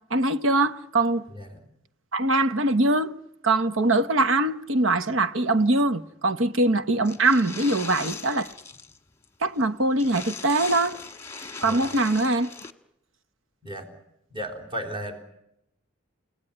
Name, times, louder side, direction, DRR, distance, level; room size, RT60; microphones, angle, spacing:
voice 1, 0.1-1.3 2.1-3.1 3.4-8.5 9.4-11.0 11.6-12.5, right 2 dB, 70° right, 1.0 m, -22 dB
voice 2, 1.3-1.6 11.6-11.9 13.6-13.9 14.3-15.2, equal, 25° right, 3.8 m, -35 dB
sound 1, 7.0-9.0 9.2-9.3 9.6-9.7 10.0-12.7, left 4 dB, 15° left, 1.5 m, -39 dB
30.0 x 18.0 x 10.0 m
head